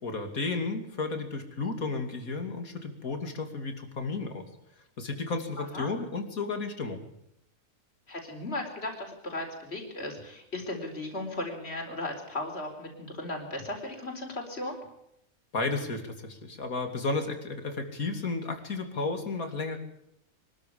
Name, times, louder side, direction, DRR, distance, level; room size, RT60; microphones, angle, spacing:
voice 1, 0.0-4.4 5.0-7.0 15.5-19.8, left 3 dB, 75° left, 6 dB, 3.2 m, -33 dB
voice 2, 5.6-5.9 8.1-14.8, left 2 dB, 45° left, 2 dB, 4.6 m, -36 dB
24.0 x 13.5 x 8.5 m, 0.78 s
omnidirectional pair, 1.5 m